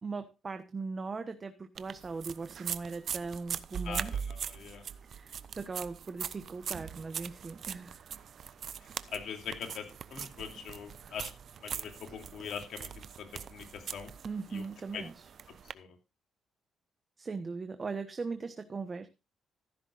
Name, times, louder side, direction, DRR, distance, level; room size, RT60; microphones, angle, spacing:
voice 1, 0.0-4.1 5.1-8.1 14.2-15.3 17.2-19.1, right 4 dB, 35° right, 8 dB, 1.1 m, -39 dB
sound 1, 1.8-15.7, right 8 dB, 60° right, 0.7 m, -41 dB
voice 2, 3.9-4.8 9.1-11.3 11.6-14.1 14.5-14.6 14.9-15.0 15.7-15.9, left 7 dB, 70° left, 4 dB, 2.8 m, -42 dB
14.5 x 12.0 x 2.5 m, 0.27 s
cardioid pair, 90°, 0 cm